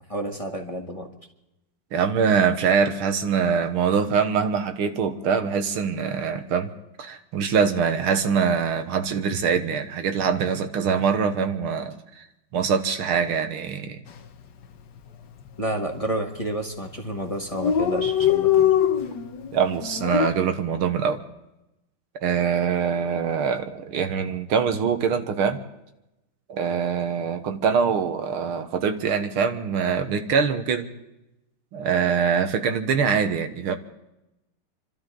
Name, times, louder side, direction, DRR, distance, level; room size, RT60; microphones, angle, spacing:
voice 1, 0.1-1.1 15.6-18.7, right 1 dB, 15° left, 1 dB, 1.6 m, -30 dB
voice 2, 1.9-6.7 7.0-11.9 12.5-14.0 19.5-21.2 22.2-25.6 26.5-30.9 31.7-33.8, right 6 dB, 80° right, 7 dB, 2.1 m, -23 dB
Dog, 14.1-14.3 14.6-14.7 15.0-15.7 16.3-16.5 16.8-16.9 17.1-17.2 17.4-20.3, left 9 dB, 60° left, 1.4 m, -22 dB
29.0 x 13.0 x 3.8 m, 0.92 s
omnidirectional pair, 2.4 m